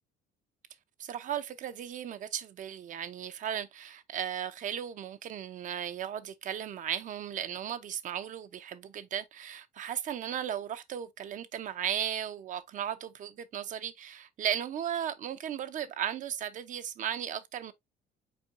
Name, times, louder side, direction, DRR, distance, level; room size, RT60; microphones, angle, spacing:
voice 1, 1.0-17.7, right 9 dB, 50° right, 0.6 m, -36 dB
4.4 x 4.3 x 2.5 m
cardioid pair, 115°, 17 cm